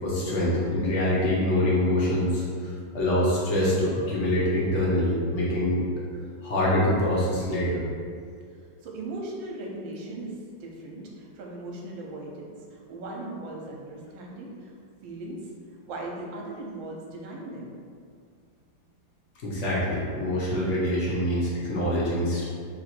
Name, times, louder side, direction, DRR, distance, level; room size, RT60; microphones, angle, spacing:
voice 1, 0.0-5.8 6.4-7.8 19.4-22.4, left 1 dB, 50° left, -7 dB, 0.9 m, -25 dB
voice 2, 8.8-14.7 15.0-15.5 15.8-17.7, right 2 dB, 75° right, -1 dB, 1.4 m, -38 dB
3.2 x 3.0 x 4.3 m, 2.2 s
omnidirectional pair, 2.1 m